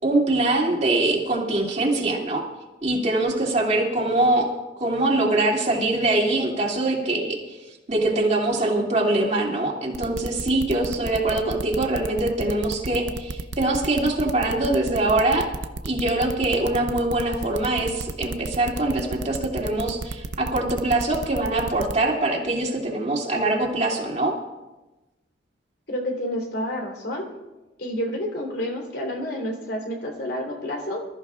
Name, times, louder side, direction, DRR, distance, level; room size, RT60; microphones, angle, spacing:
voice 1, 0.0-2.4 2.8-4.5 4.8-7.4 7.9-15.5 15.8-24.4, right 2 dB, 40° right, -1 dB, 2.6 m, -23 dB
sound 1, 9.9-21.9, right 3 dB, 75° right, 0.7 m, -32 dB
voice 2, 25.9-27.3 27.8-31.1, equal, 65° left, 0 dB, 3.6 m, -29 dB
26.0 x 14.0 x 2.4 m, 1.1 s
head